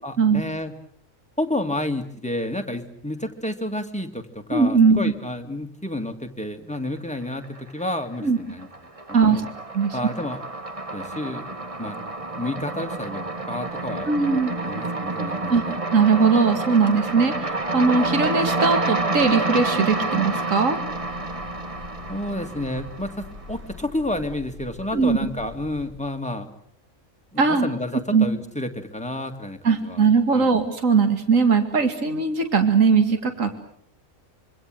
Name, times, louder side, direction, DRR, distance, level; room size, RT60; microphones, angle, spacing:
voice 1, 0.0-0.7 1.4-8.7 9.1-9.5 9.9-10.4 10.9-11.5 11.8-12.0 12.4-14.1 14.6-15.8 22.1-26.5 27.3-30.1 30.3-30.5, left 1 dB, 5° left, 4 dB, 2.1 m, -30 dB
voice 2, 4.5-5.1 8.2-8.4 9.1-9.4 9.7-10.0 14.1-14.5 15.5-15.6 15.9-20.8 24.9-25.2 27.4-27.7 28.1-28.2 29.6-33.6, right 5 dB, 70° right, 7 dB, 2.6 m, -19 dB
sound 1, 7.2-8.0 8.3-23.4, right 2 dB, 25° right, 1.6 m, -29 dB
Breathing / Train, 20.6-26.1, left 3 dB, 45° right, 7.4 m, -43 dB
26.0 x 24.0 x 7.8 m, 0.62 s
omnidirectional pair, 1.4 m